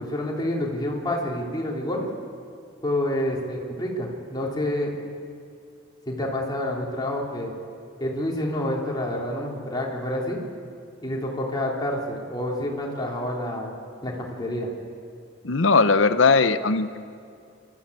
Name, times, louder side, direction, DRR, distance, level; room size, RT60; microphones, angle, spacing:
voice 1, 0.0-2.1 2.8-4.9 6.0-7.5 8.0-10.4 11.0-13.8 14.0-14.7, left 1 dB, 20° left, -2 dB, 3.4 m, -28 dB
voice 2, 15.4-17.0, left 4 dB, 70° left, 11 dB, 0.9 m, -19 dB
28.5 x 13.5 x 8.5 m, 2.3 s
head